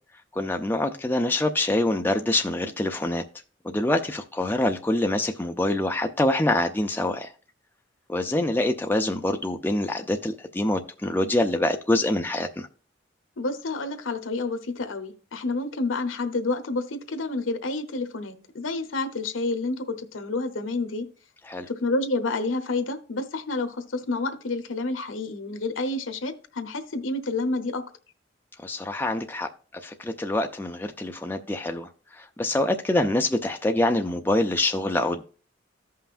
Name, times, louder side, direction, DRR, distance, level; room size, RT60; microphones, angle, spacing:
voice 1, 0.3-3.2 3.6-7.3 8.1-12.7 21.5-21.7 28.6-29.5 29.8-35.2, left 1 dB, 10° left, 5 dB, 0.4 m, -25 dB
voice 2, 13.4-21.0 21.7-27.8, left 3 dB, 85° left, 10 dB, 0.9 m, -29 dB
14.5 x 5.6 x 2.5 m, 0.38 s
head